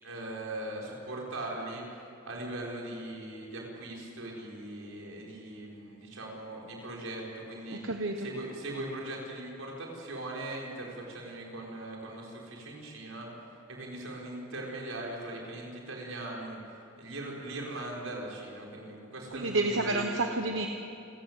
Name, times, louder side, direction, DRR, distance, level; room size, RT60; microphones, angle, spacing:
voice 1, 0.0-1.8 2.3-7.8 8.2-13.3 13.7-20.4, right 1 dB, 85° right, -2 dB, 5.8 m, -40 dB
voice 2, 7.7-8.3 19.3-20.7, right 2 dB, 65° right, 4 dB, 1.2 m, -30 dB
29.0 x 15.5 x 8.4 m, 2.6 s
head